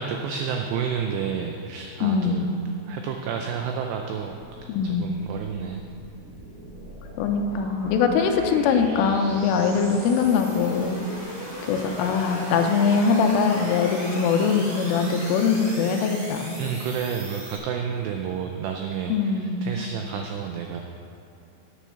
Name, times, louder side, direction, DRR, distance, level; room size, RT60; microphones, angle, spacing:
voice 1, 0.0-2.5 2.9-4.4 4.8-5.8 16.6-20.8, right 7 dB, 85° right, 3 dB, 2.4 m, -30 dB
voice 2, 2.0-2.5 4.7-5.1 7.2-11.0 11.7-16.6 19.1-19.6, left 5 dB, 90° left, 5 dB, 3.4 m, -22 dB
sound 1, 4.3-17.6, equal, 45° right, 4.4 m, -38 dB
9.9 x 9.4 x 5.8 m, 2.8 s
omnidirectional pair, 5.6 m